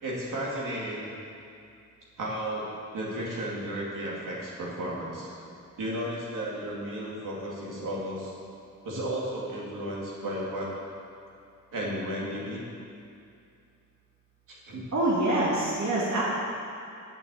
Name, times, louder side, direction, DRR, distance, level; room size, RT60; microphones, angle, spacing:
voice 1, 0.0-1.1 2.2-5.3 5.8-8.3 8.8-10.7 11.7-12.6 14.5-14.8, right 1 dB, 90° right, -4 dB, 2.7 m, -33 dB
voice 2, 14.9-16.2, right 1 dB, 65° right, -6 dB, 1.7 m, -25 dB
8.4 x 7.1 x 8.4 m, 2.5 s
wide cardioid pair, 175°, 31 cm